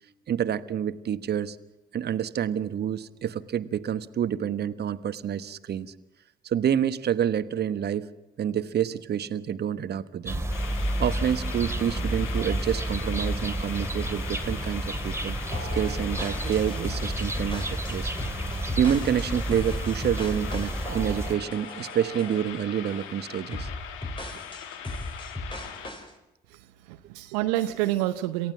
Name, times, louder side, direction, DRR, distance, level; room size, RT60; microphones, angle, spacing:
voice 1, 0.3-1.6 1.9-5.9 6.4-8.1 8.4-10.4 11.0-18.1 18.8-23.7, right 9 dB, 55° right, 13 dB, 1.2 m, -28 dB
sound 1, 10.3-21.4, right 1 dB, 15° right, 2.6 m, -31 dB
sound 2, 10.5-25.9, left 9 dB, 75° left, 1.7 m, -41 dB
sound 3, 15.5-22.5 22.9-23.1 23.5-26.1, left 1 dB, 25° left, 5.5 m, -37 dB
voice 2, 26.5-28.5, right 15 dB, 80° right, 9 dB, 0.8 m, -28 dB
28.0 x 15.0 x 7.4 m, 0.96 s
hypercardioid pair, 45°, 21 cm